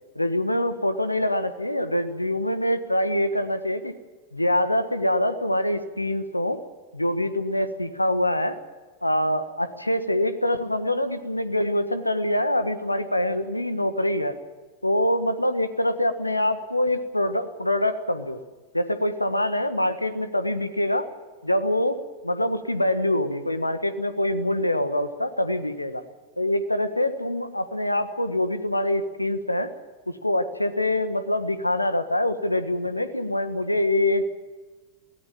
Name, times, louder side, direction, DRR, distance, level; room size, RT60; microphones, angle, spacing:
voice 1, 0.1-3.9 4.3-6.6 6.9-8.6 9.0-14.3 14.8-18.4 18.7-21.1 21.4-26.0 26.4-29.7 30.1-34.3, left 1 dB, 85° left, 11 dB, 1.5 m, -25 dB
23.0 x 18.0 x 7.4 m, 1.4 s
figure-of-eight pair, 90°, 0 cm